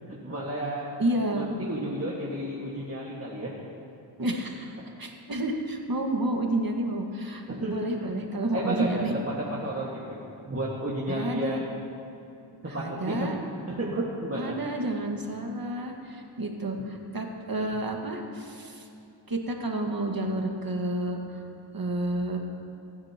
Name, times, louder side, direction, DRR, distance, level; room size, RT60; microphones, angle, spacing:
voice 1, 0.1-0.9 1.2-3.5 7.5-8.1 8.5-10.2 10.4-11.8 12.7-13.3 13.7-14.5, right 1 dB, 30° right, -6 dB, 1.9 m, -32 dB
voice 2, 1.0-1.5 4.2-9.1 11.1-11.6 12.6-13.4 14.3-18.9 19.3-21.4 21.7-22.4, right 1 dB, 50° right, 1 dB, 1.9 m, -30 dB
28.5 x 9.6 x 3.0 m, 2.7 s
cardioid pair, 60°, 47 cm